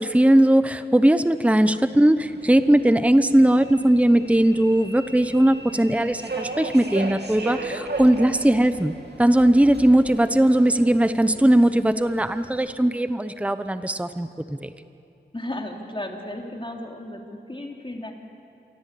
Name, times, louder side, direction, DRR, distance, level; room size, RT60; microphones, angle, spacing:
voice 1, 0.0-14.7, right 1 dB, 5° right, 11 dB, 0.8 m, -19 dB
Subway metro underground, 2.2-12.7, right 2 dB, 70° right, 3.0 m, -37 dB
voice 2, 15.3-18.1, left 1 dB, 30° left, 1 dB, 3.3 m, -34 dB
27.0 x 24.0 x 8.5 m, 2.7 s
wide cardioid pair, 70°, 18 cm